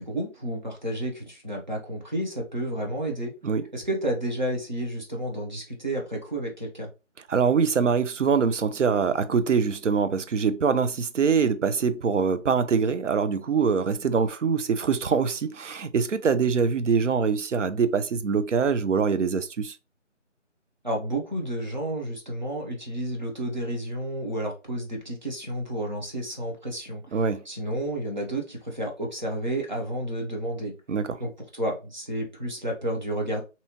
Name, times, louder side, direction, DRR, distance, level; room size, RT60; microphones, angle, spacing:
voice 1, 0.0-3.3 3.7-6.9 20.8-30.7 31.2-33.4, right 1 dB, 40° right, 0.8 m, -31 dB
voice 2, 7.3-19.7 27.1-27.4 30.9-31.2, right 6 dB, 75° right, 0.5 m, -24 dB
2.7 x 2.2 x 2.8 m
figure-of-eight pair, 165°, 37 cm